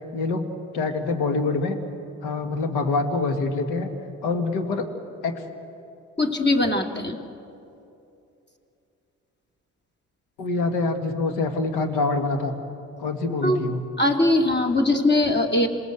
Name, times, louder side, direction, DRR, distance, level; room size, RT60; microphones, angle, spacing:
voice 1, 0.1-1.8 2.2-3.9 4.2-4.9 5.2-5.4 10.4-12.5 13.0-13.9, left 3 dB, 75° left, 7 dB, 2.0 m, -25 dB
voice 2, 6.2-7.2 13.4-13.6 14.0-15.7, left 2 dB, 25° left, 3 dB, 2.8 m, -21 dB
27.5 x 19.5 x 8.0 m, 2.8 s
hypercardioid pair, 55°, 40 cm